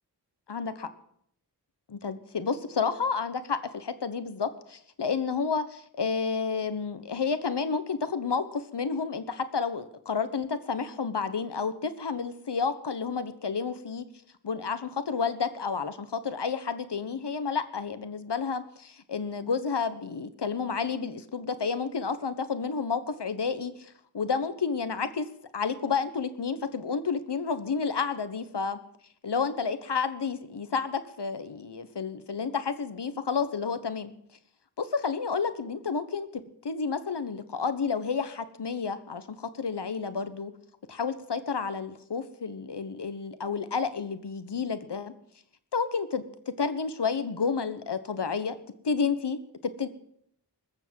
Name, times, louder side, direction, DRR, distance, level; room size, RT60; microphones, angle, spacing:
voice 1, 1.9-14.0 14.4-25.3 25.5-28.8 29.2-34.1 34.8-36.3 36.6-40.5 40.9-45.1 45.7-46.2 46.6-48.6 48.8-49.4 49.8-49.9, left 5 dB, 70° left, 12 dB, 1.2 m, -30 dB
20.0 x 7.1 x 7.7 m, 0.71 s
cardioid pair, 40°, 42 cm